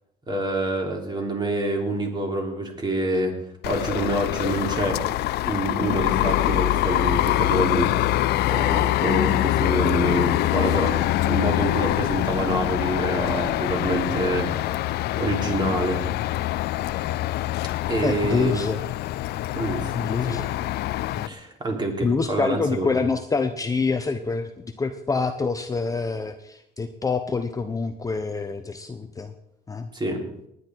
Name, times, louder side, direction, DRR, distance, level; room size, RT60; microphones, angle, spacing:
voice 1, 0.3-3.3 3.6-5.0 5.5-8.1 8.5-11.0 11.2-14.9 15.2-16.0 17.9-18.6 19.5-19.9 20.2-20.4 21.3-22.9 29.9-30.2, right 1 dB, 25° right, 2 dB, 3.5 m, -26 dB
sound 1, 3.6-21.3, left 15 dB, 75° left, 0.5 m, -24 dB
sound 2, 4.8-15.8, left 6 dB, 55° left, 1.8 m, -37 dB
voice 2, 18.0-18.8 19.9-20.5 21.2-21.3 22.0-29.3 29.7-29.9, left 4 dB, 20° left, 7 dB, 0.9 m, -26 dB
19.5 x 9.8 x 4.6 m, 0.77 s
cardioid pair, 110°, 17 cm